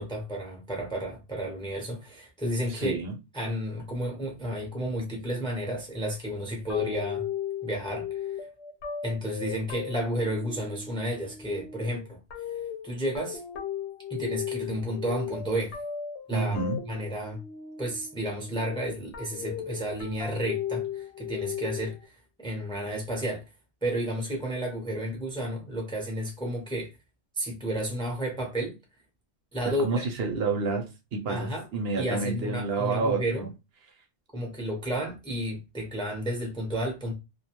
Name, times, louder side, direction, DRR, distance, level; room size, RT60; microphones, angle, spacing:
voice 1, 0.0-3.0 3.3-7.2 7.6-8.4 9.0-12.2 12.8-13.4 14.1-15.8 16.3-16.6 16.9-17.4 17.8-23.4 23.8-26.9 27.4-28.8 29.5-30.0 31.3-31.6 32.0-33.5 34.3-37.1, equal, 5° left, 0.5 m, -32 dB
voice 2, 2.7-3.1 16.3-16.8 29.6-33.5, right 4 dB, 65° right, 0.8 m, -29 dB
sound 1, 6.7-22.1, left 9 dB, 85° left, 0.9 m, -37 dB
2.3 x 2.2 x 2.8 m
omnidirectional pair, 1.1 m